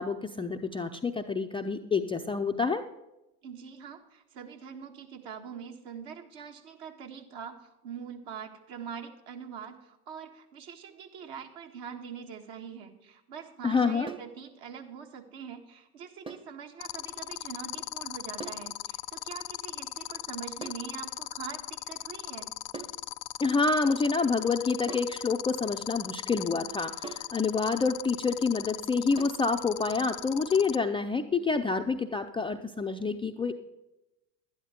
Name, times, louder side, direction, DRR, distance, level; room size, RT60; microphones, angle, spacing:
voice 1, 0.0-2.8 13.6-14.1 23.4-33.5, left 4 dB, 10° left, 4 dB, 0.4 m, -28 dB
voice 2, 3.4-22.5, right 7 dB, 60° right, 4 dB, 1.7 m, -43 dB
sound 1, 14.1-14.4 16.3-16.6 18.4-18.7 20.6-20.9 22.7-23.0 24.9-25.2 27.0-27.4 29.2-29.5, right 4 dB, 10° right, 0.8 m, -42 dB
sound 2, 16.8-30.8, left 20 dB, 60° left, 0.6 m, -37 dB
12.0 x 10.0 x 4.3 m, 0.93 s
hypercardioid pair, 75°, 49 cm